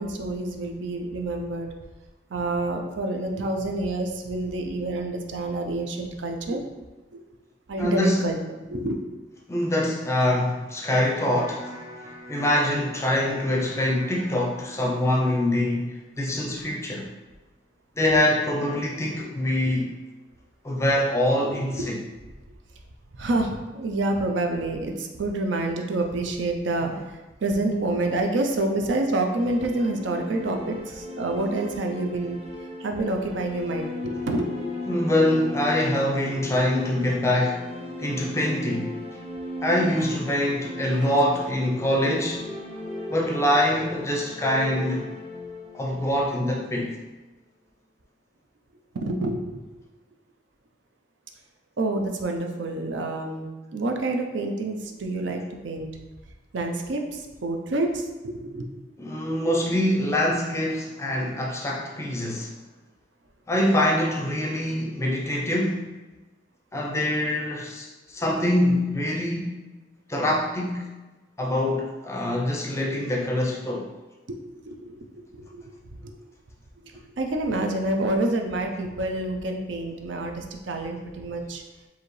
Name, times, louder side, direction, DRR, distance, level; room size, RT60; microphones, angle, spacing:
voice 1, 0.0-1.7 2.3-6.6 7.7-9.0 19.1-19.2 21.8-21.9 23.2-26.9 27.4-32.4 32.8-34.5 40.9-41.1 48.9-49.6 51.8-55.9 56.5-58.7 74.3-74.4 74.6-76.1 76.8-81.6, right 2 dB, 80° right, 3 dB, 0.5 m, -28 dB
voice 2, 7.8-8.3 9.5-11.7 12.3-17.1 18.0-19.9 20.6-22.0 34.9-37.7 38.0-39.0 39.6-42.5 43.1-45.0 45.7-47.0 59.0-62.5 63.5-65.9 66.7-69.5 70.1-70.9 71.4-73.9, left 1 dB, 15° left, -1 dB, 0.5 m, -24 dB
Electric guitar, 11.4-17.4, left 1 dB, 50° right, 1.4 m, -45 dB
sound 1, 29.1-47.0, left 1 dB, 35° right, 0.7 m, -37 dB
4.8 x 2.7 x 3.1 m, 1.2 s
head